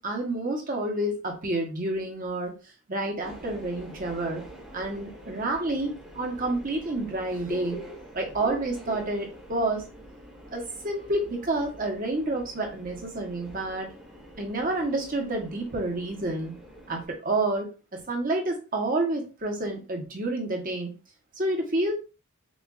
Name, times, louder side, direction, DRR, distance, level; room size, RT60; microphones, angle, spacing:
voice 1, 0.0-2.5 2.9-4.4 4.7-7.8 8.1-9.8 10.5-13.9 14.4-16.5 16.9-20.9 21.4-21.9, right 2 dB, 35° right, 1 dB, 1.0 m, -29 dB
Subway metro underground, 3.2-17.1, right 1 dB, 5° right, 1.1 m, -45 dB
6.2 x 2.5 x 2.4 m, 0.33 s
head